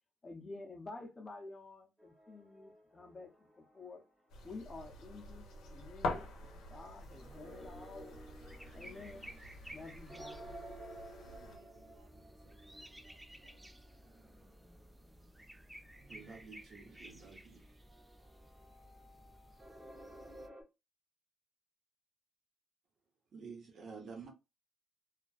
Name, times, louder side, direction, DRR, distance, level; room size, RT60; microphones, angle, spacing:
voice 1, 0.2-3.3 3.6-4.0 4.4-8.4 8.7-9.3 9.7-10.7, left 3 dB, 30° left, 0.7 m, -50 dB
sound 1, 2.0-4.2 4.5-20.6, right 1 dB, 25° right, 0.9 m, -56 dB
sound 2, 4.3-11.6, left 3 dB, 85° left, 0.6 m, -45 dB
sound 3, 7.0-20.5, right 1 dB, 10° right, 0.4 m, -56 dB
voice 2, 11.2-13.7, right 4 dB, 90° right, 0.8 m, -67 dB
voice 3, 16.1-17.8 23.3-24.3, right 5 dB, 55° right, 1.0 m, -50 dB
2.4 x 2.2 x 2.4 m
cardioid pair, 90°, 0 cm